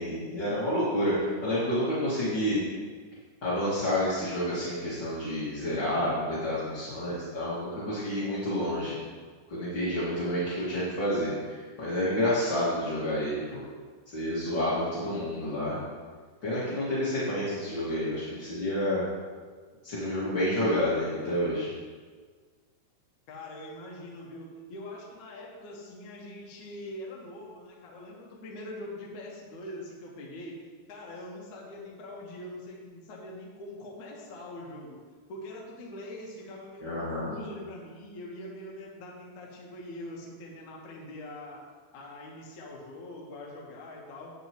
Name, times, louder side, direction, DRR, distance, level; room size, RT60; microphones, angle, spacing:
voice 1, 0.0-2.6 3.4-9.0 9.5-13.6 14.1-15.8 16.4-19.0 19.8-21.7 36.8-37.3, left 1 dB, 45° left, -10 dB, 1.5 m, -29 dB
voice 2, 23.3-35.0 35.3-41.6 41.9-44.3, left 1 dB, 70° left, -3 dB, 1.9 m, -43 dB
13.5 x 9.0 x 3.0 m, 1.5 s
omnidirectional pair, 5.4 m